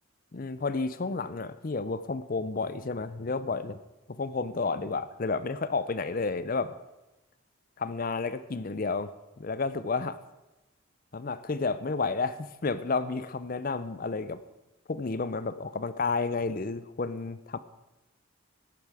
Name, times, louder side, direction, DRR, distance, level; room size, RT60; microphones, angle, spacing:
voice 1, 0.3-3.8 4.1-6.7 7.8-9.1 9.4-10.2 11.1-14.4 14.9-17.6, left 4 dB, 40° left, 14 dB, 0.5 m, -31 dB
14.0 x 10.5 x 4.8 m, 1.1 s
head